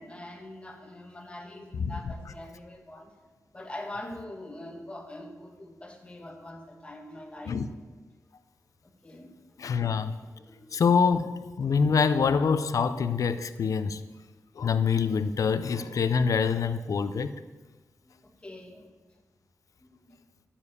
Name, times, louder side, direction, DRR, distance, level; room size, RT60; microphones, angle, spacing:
voice 1, 0.0-3.1 3.5-7.5 9.0-9.3 10.4-10.8 18.0-18.8 19.8-20.2, left 1 dB, 20° left, 1.6 m, -43 dB
voice 2, 1.7-2.1 7.5-7.7 9.6-10.2 10.7-14.0 14.6-17.3, left 5 dB, 70° left, 0.6 m, -25 dB
12.0 x 7.1 x 8.3 m
wide cardioid pair, 165°, 6 cm